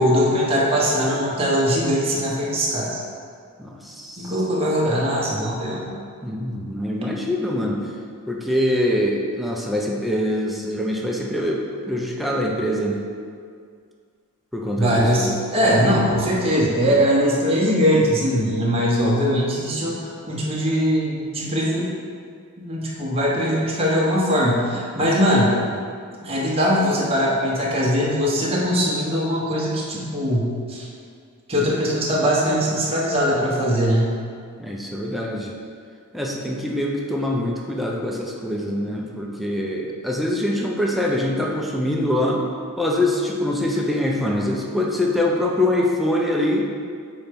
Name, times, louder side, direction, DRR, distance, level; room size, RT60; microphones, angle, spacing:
voice 1, 0.0-3.0 4.2-5.9 14.8-21.9 22.6-25.5 26.2-30.9 31.5-34.1, equal, 25° right, -5 dB, 1.1 m, -21 dB
voice 2, 3.6-4.3 6.2-7.8 8.3-13.0 14.5-15.3 15.7-16.0 25.0-25.1 34.6-35.5 36.1-42.4 42.8-46.7, left 1 dB, ahead, -2 dB, 0.5 m, -24 dB
4.4 x 4.3 x 5.2 m, 2.1 s
head